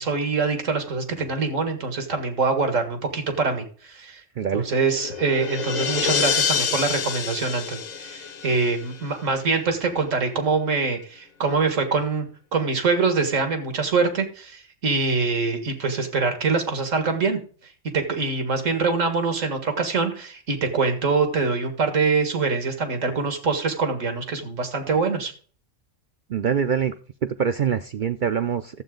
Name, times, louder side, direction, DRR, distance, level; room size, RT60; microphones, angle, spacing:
voice 1, 0.0-4.2 4.5-12.3 12.5-17.4 17.9-25.3, right 4 dB, 85° right, 6 dB, 2.0 m, -24 dB
voice 2, 4.4-4.7 26.3-27.0 27.2-28.8, right 7 dB, 60° right, 9 dB, 0.5 m, -24 dB
sound 1, 4.7-9.2, left 7 dB, 45° left, 0.7 m, -27 dB
12.5 x 7.8 x 3.8 m, 0.43 s
omnidirectional pair, 1.3 m